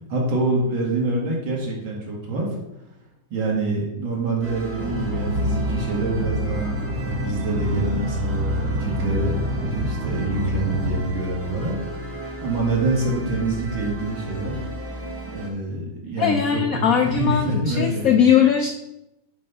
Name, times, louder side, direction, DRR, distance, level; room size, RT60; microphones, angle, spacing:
voice 1, 0.1-2.5 3.3-6.7 7.0-11.7 12.4-14.6 15.3-18.2, right 2 dB, 80° right, -2 dB, 2.6 m, -26 dB
sound 1, 4.4-15.5, right 1 dB, 20° right, 0.4 m, -35 dB
sound 2, 4.8-11.0, right 1 dB, 55° right, 0.9 m, -26 dB
voice 2, 16.2-18.7, left 8 dB, 85° left, 4 dB, 0.7 m, -19 dB
7.5 x 3.4 x 5.4 m, 0.86 s
omnidirectional pair, 2.1 m